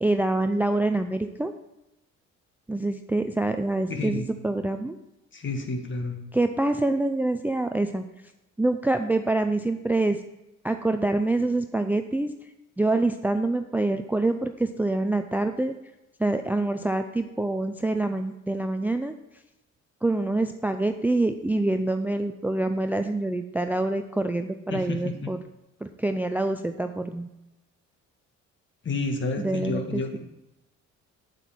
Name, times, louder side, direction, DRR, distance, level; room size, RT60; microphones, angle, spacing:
voice 1, 0.0-1.5 2.7-5.0 6.3-8.0 8.6-10.2 10.6-12.3 12.8-15.7 16.2-19.1 20.0-25.4 25.8-27.3 29.4-30.2, right 2 dB, 5° right, 8 dB, 0.4 m, -26 dB
voice 2, 3.9-4.3 5.3-6.2 24.7-25.3 28.8-30.2, left 3 dB, 40° left, 5 dB, 1.6 m, -30 dB
8.3 x 8.1 x 4.4 m, 0.93 s
cardioid pair, 90°, 30 cm